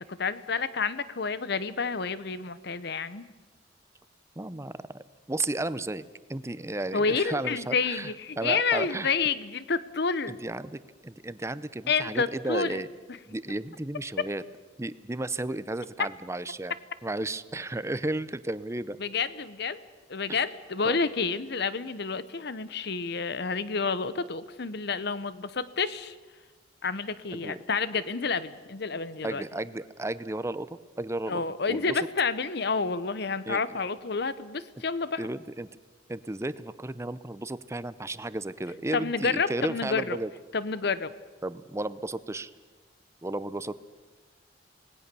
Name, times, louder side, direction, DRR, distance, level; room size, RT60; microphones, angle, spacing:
voice 1, 0.0-3.3 6.9-10.4 11.9-12.8 14.2-14.3 19.0-19.8 20.1-26.1 26.8-29.4 31.3-35.3 38.9-40.2 40.5-41.1, left 4 dB, 60° left, 15 dB, 1.0 m, -29 dB
voice 2, 4.4-9.1 10.3-12.9 13.3-14.4 14.8-16.7 17.0-19.0 20.8-21.0 27.3-27.6 29.2-31.4 31.7-32.1 33.5-33.8 35.2-35.7 36.1-40.3 41.4-42.5 43.2-43.8, right 2 dB, 15° right, 15 dB, 0.6 m, -34 dB
26.5 x 19.0 x 6.9 m, 1.3 s
head